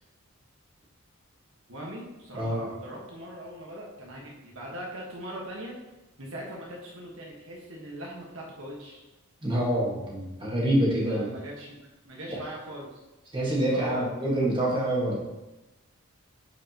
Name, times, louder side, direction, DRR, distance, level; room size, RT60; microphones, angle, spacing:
voice 1, 1.7-5.8 6.2-9.0 11.0-11.8 12.0-13.0 13.7-14.1, right 1 dB, 65° right, -3 dB, 1.5 m, -40 dB
voice 2, 2.3-2.6 9.4-11.3 12.3-12.4 13.3-15.2, right 1 dB, 20° right, -5 dB, 1.7 m, -26 dB
10.5 x 5.0 x 3.0 m, 1.0 s
head